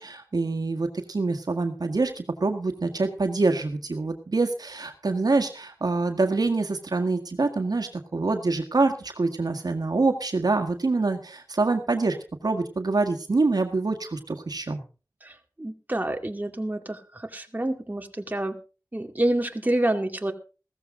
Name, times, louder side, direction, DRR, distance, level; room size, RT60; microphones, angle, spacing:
voice 1, 0.0-12.2 12.4-14.8, right 3 dB, 70° right, 6 dB, 1.7 m, -25 dB
voice 2, 15.2-18.6 18.9-20.3, right 1 dB, 25° right, 5 dB, 2.3 m, -28 dB
16.0 x 14.0 x 3.8 m, 0.34 s
wide cardioid pair, 55°, 7 cm